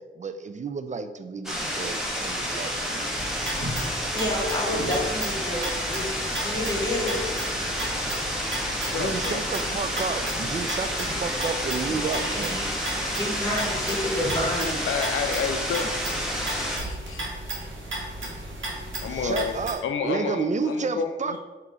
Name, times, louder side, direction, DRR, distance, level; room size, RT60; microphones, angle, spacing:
voice 1, 0.0-3.4 8.9-12.7 19.1-21.4, right 4 dB, 40° right, 10 dB, 0.4 m, -31 dB
sound 1, 1.5-16.8, equal, ahead, 1.0 m, -30 dB
sound 2, 3.1-19.7, right 1 dB, 75° right, 1.2 m, -34 dB
voice 2, 4.1-7.3 7.6-7.9 12.0-12.8 13.1-14.8 17.6-17.7, left 1 dB, 20° left, -2 dB, 1.5 m, -30 dB
voice 3, 8.6-9.4 13.9-14.0 14.9-15.9 16.5-17.3 19.0-19.5 19.8-21.4, left 6 dB, 85° left, 6 dB, 0.4 m, -30 dB
3.7 x 2.8 x 4.8 m, 1.2 s
cardioid pair, 60°, 20 cm